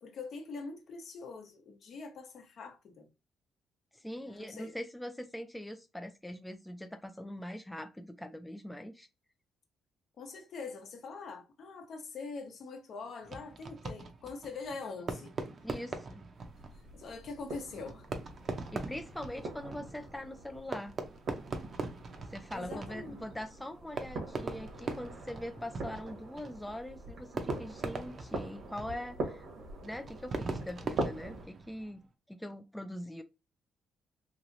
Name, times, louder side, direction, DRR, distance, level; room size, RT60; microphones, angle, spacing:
voice 1, 0.0-3.1 4.2-4.8 10.2-15.3 16.7-18.1 22.5-23.3, left 4 dB, 60° left, 0.9 m, -44 dB
voice 2, 3.9-9.1 15.6-16.3 18.7-20.9 22.2-29.5 29.8-32.0 32.3-33.2, left 1 dB, 5° left, 0.4 m, -42 dB
Fireworks, 13.2-32.0, right 3 dB, 45° right, 0.6 m, -42 dB
sound 1, 16.3-31.5, right 2 dB, 70° right, 1.1 m, -43 dB
3.1 x 2.9 x 2.6 m
cardioid pair, 90°, 0 cm